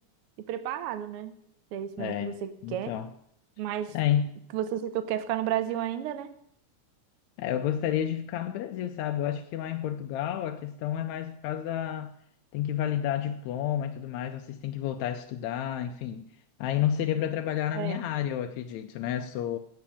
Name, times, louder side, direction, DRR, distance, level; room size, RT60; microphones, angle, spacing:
voice 1, 0.5-1.4 1.7-2.9 3.6-3.9 4.5-6.3 17.7-18.0, right 11 dB, 70° right, 1.4 m, -32 dB
voice 2, 2.0-2.4 2.6-3.1 3.9-4.3 7.4-12.2 12.5-16.3 16.6-19.6, left 10 dB, 80° left, 1.9 m, -30 dB
9.4 x 7.8 x 8.4 m
omnidirectional pair, 3.3 m